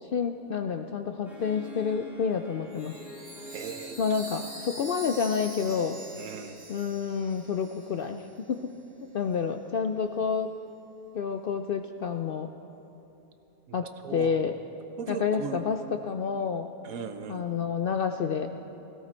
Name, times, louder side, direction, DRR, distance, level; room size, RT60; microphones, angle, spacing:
voice 1, 0.0-3.0 4.0-6.0 6.7-8.6 9.1-10.6 11.1-12.5 13.7-14.6 15.1-16.7 17.3-18.5, left 6 dB, 65° left, 6 dB, 0.5 m, -29 dB
Harp, 1.2-6.5, left 1 dB, ahead, 4.3 m, -48 dB
Chime, 2.7-8.3, right 1 dB, 35° right, 2.2 m, -45 dB
voice 2, 3.5-4.0 6.2-6.5 13.7-14.4 15.0-15.6 16.8-17.4, right 6 dB, 90° right, 8 dB, 1.3 m, -38 dB
17.5 x 16.5 x 4.3 m, 3.0 s
omnidirectional pair, 1.4 m